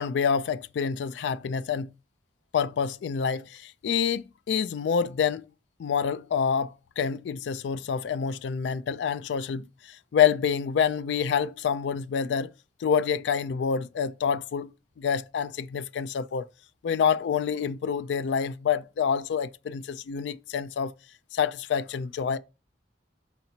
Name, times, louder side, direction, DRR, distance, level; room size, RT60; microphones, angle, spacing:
voice 1, 0.0-1.9 2.5-5.4 5.8-12.5 12.8-14.7 15.0-16.5 16.8-20.9 21.3-22.4, left 7 dB, 75° left, 0.3 m, -27 dB
4.1 x 2.8 x 4.2 m
head